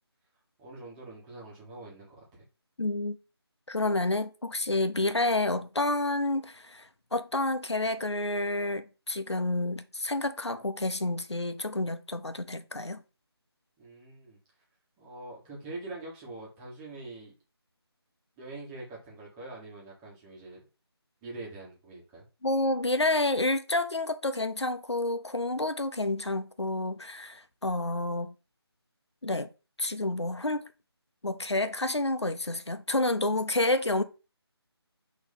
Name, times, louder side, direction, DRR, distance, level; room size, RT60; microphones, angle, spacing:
voice 1, 0.6-2.4 13.8-14.4 15.0-17.3 18.4-20.6 21.2-22.2, right 2 dB, 10° right, 1.4 m, -44 dB
voice 2, 2.8-3.2 3.7-13.0 22.4-28.3 29.2-29.5 29.8-30.6 31.2-34.0, left 2 dB, 85° left, 0.8 m, -29 dB
6.2 x 3.1 x 5.3 m
figure-of-eight pair, 160°, 14 cm